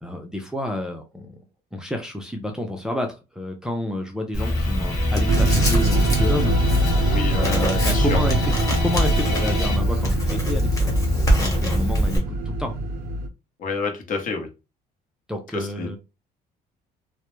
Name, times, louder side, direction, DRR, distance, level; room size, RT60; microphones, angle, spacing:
voice 1, 0.0-1.4 1.7-6.5 7.3-10.9 11.2-12.7 15.3-16.0, left 1 dB, 5° right, 2 dB, 0.5 m, -29 dB
Writing, 4.3-12.2, equal, 20° left, 1.0 m, -23 dB
sound 1, 4.4-9.8, left 4 dB, 80° left, 1.3 m, -31 dB
sound 2, 5.3-13.3, right 2 dB, 60° right, 0.5 m, -24 dB
voice 2, 7.1-7.6 7.9-8.2 13.6-14.5 15.5-16.0, left 4 dB, 50° left, 4 dB, 0.7 m, -29 dB
2.1 x 2.0 x 3.0 m, 0.28 s
cardioid pair, 110°, 17 cm